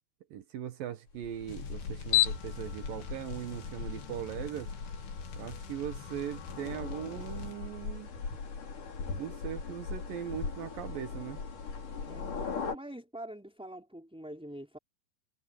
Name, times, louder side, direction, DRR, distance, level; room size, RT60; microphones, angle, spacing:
voice 1, 0.3-4.7 5.4-8.1 9.1-11.4, right 10 dB, 65° right, 2.7 m, -39 dB
sound 1, 1.1-12.8, left 8 dB, 50° left, 5.4 m, -36 dB
sound 2, 1.5-7.6, left 6 dB, 75° left, 4.2 m, -49 dB
voice 2, 12.1-14.8, right 1 dB, ahead, 5.1 m, -45 dB
omnidirectional pair, 4.7 m